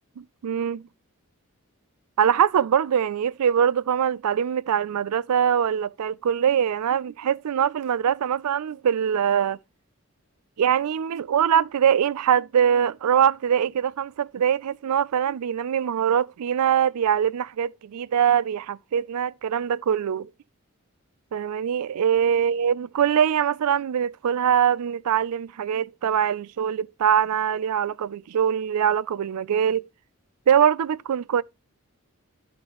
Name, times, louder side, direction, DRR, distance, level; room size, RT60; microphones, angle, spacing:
voice 1, 0.2-0.8 2.2-9.6 10.6-20.3 21.3-29.9 30.5-31.4, right 8 dB, 85° right, 0.4 m, -23 dB
13.5 x 5.1 x 3.0 m
head